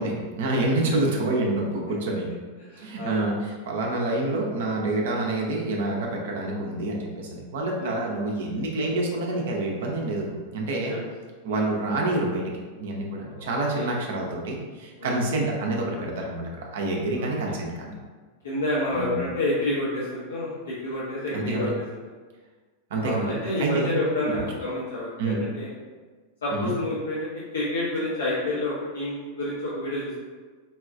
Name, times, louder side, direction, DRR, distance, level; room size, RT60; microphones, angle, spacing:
voice 1, 0.0-2.3 2.8-10.9 11.4-12.4 12.8-17.9 18.9-19.2 21.3-21.7 22.9-24.0 25.2-25.4 26.5-26.8, right 2 dB, 55° right, -1 dB, 0.5 m, -27 dB
voice 2, 2.7-3.3 7.8-8.0 10.7-11.1 11.5-11.6 13.3-13.5 13.8-13.9 15.0-15.2 17.1-17.6 18.4-21.7 23.0-25.7 26.4-27.3 27.5-30.2, left 2 dB, 65° left, -7 dB, 0.6 m, -29 dB
4.1 x 2.2 x 2.4 m, 1.4 s
figure-of-eight pair, 90°, 0 cm